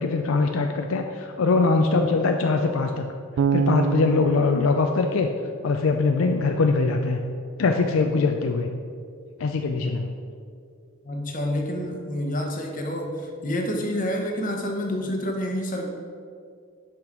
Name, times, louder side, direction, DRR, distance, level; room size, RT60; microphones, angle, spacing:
voice 1, 0.0-3.1 3.5-5.3 5.6-7.2 7.6-8.7 9.4-10.2, left 3 dB, 70° left, 4 dB, 0.4 m, -22 dB
Bass guitar, 3.4-6.4, right 5 dB, 70° right, 0.3 m, -28 dB
voice 2, 11.0-15.9, equal, 40° left, 1 dB, 1.0 m, -28 dB
5.9 x 5.1 x 6.0 m, 2.3 s
head